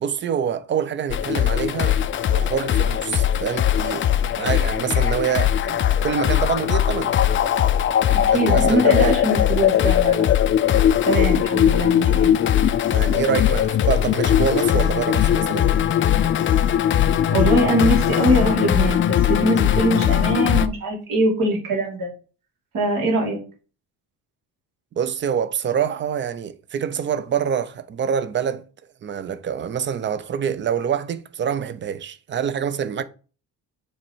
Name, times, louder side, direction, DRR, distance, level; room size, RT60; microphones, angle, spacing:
voice 1, 0.0-2.0 2.3-7.1 8.3-9.1 12.9-15.7 25.0-28.6 29.0-33.0, right 8 dB, 30° right, 0.5 m, -26 dB
sound 1, 1.1-20.7, left 10 dB, 35° left, 0.4 m, -19 dB
voice 2, 8.2-10.2 11.1-12.5 17.3-22.1 22.7-23.4, right 1 dB, 65° right, 2.7 m, -22 dB
7.1 x 3.2 x 4.4 m
cardioid pair, 140°, 35 cm